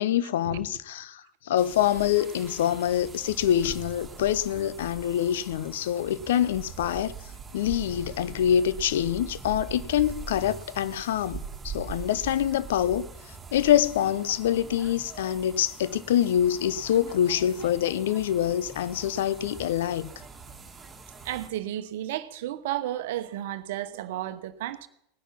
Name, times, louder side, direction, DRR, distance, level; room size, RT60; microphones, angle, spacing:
voice 1, 0.0-7.1 7.5-13.1 13.5-20.1, left 10 dB, 65° left, 0.6 m, -25 dB
sound 1, 1.6-21.5, right 5 dB, 15° right, 2.5 m, -42 dB
voice 2, 21.2-24.9, right 13 dB, 60° right, 1.0 m, -33 dB
19.0 x 10.0 x 5.8 m
figure-of-eight pair, 85°, 0 cm